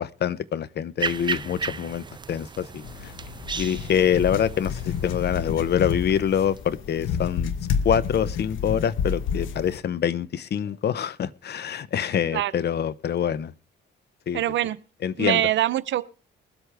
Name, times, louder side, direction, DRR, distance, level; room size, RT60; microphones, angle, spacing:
voice 1, 0.0-3.1 3.6-7.5 7.8-13.5 14.3-14.4 15.0-15.5, left 9 dB, 55° left, 0.7 m, -25 dB
sound 1, 1.0-6.6, right 5 dB, 25° right, 0.5 m, -35 dB
sound 2, 2.8-9.8, left 7 dB, 80° left, 1.1 m, -30 dB
voice 2, 14.3-14.8 15.2-16.0, right 12 dB, 70° right, 0.7 m, -23 dB
21.5 x 8.0 x 3.4 m
cardioid pair, 90°, 20 cm